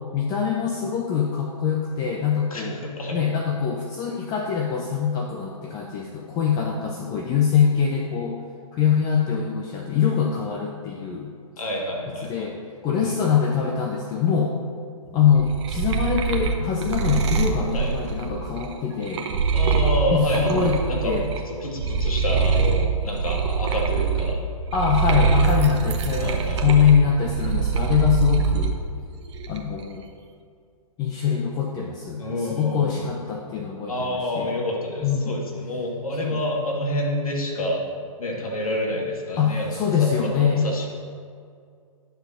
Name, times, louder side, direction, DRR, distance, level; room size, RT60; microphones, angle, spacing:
voice 1, 0.1-2.8 3.1-8.4 8.7-11.3 12.2-14.6 15.1-19.3 20.1-21.3 24.7-28.7 29.5-30.0 31.0-34.5 35.0-35.4 36.2-36.4 39.4-40.7, left 7 dB, 20° left, 1 dB, 0.6 m, -23 dB
voice 2, 2.5-3.2 11.6-12.5 12.9-13.2 17.7-17.9 19.5-21.1 21.5-24.4 26.2-26.8 32.2-33.1 33.9-37.8 38.2-40.9, left 1 dB, 75° left, -1 dB, 2.2 m, -28 dB
sound 1, 15.2-21.4 21.7-28.7 29.1-29.8, right 5 dB, 50° right, 1.0 m, -24 dB
10.5 x 4.7 x 5.8 m, 2.2 s
hypercardioid pair, 130°, 18 cm